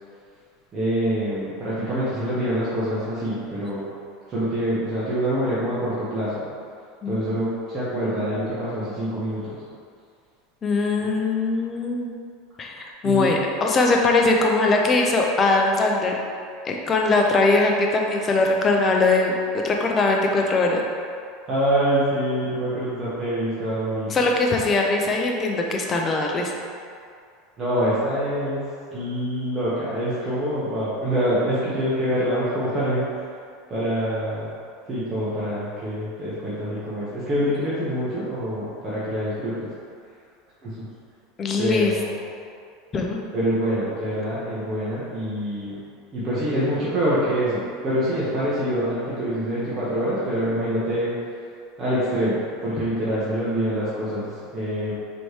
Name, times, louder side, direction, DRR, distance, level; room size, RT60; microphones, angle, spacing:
voice 1, 0.7-3.8 4.3-6.4 7.0-9.6 11.0-11.1 13.0-13.4 21.5-24.1 27.6-33.1 33.7-34.5 34.9-39.7 40.6-40.9 41.6-42.2 43.3-45.8 46.1-51.1 51.8-54.9, equal, 25° right, -11 dB, 1.0 m, -25 dB
voice 2, 10.6-12.1 12.6-16.1 16.7-19.3 19.6-20.8 24.1-26.5 41.4-41.9 42.9-43.2, left 3 dB, 25° left, 1 dB, 0.5 m, -21 dB
4.1 x 3.1 x 3.2 m, 2.3 s
supercardioid pair, 135°, 0 cm